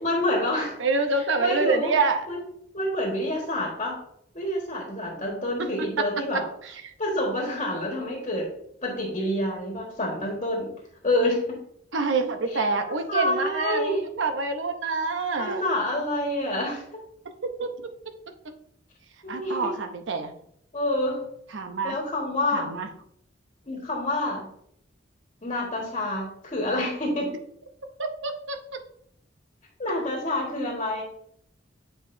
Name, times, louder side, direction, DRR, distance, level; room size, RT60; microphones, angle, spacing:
voice 1, 0.0-0.8 1.4-1.9 2.3-2.4 2.7-4.0 4.3-6.4 7.0-8.5 8.8-10.7 11.0-11.4 12.5-14.0 15.4-16.8 19.2-19.7 20.7-21.2 21.8-22.7 23.7-24.4 25.4-27.3 29.8-31.0, left 1 dB, 35° left, -1 dB, 1.5 m, -27 dB
voice 2, 0.6-2.3 5.6-6.9 11.9-15.6 17.4-18.1 19.3-20.3 21.5-22.0 22.5-22.9 28.0-28.6, right 4 dB, 70° right, 6 dB, 0.8 m, -27 dB
8.0 x 4.8 x 2.6 m, 0.69 s
head